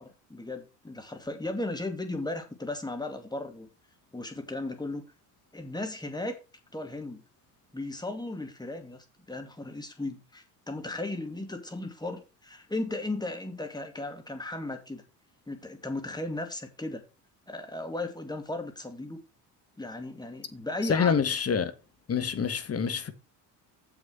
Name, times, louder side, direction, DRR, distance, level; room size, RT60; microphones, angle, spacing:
voice 1, 0.0-3.7 4.1-5.1 5.5-6.3 6.7-7.2 7.7-15.0 15.5-17.0 17.5-19.2 19.8-21.1, left 2 dB, 10° left, 2.4 m, -36 dB
voice 2, 20.8-21.7 22.1-23.1, left 6 dB, 30° left, 1.5 m, -26 dB
7.3 x 6.4 x 5.8 m
hypercardioid pair, 60°, 47 cm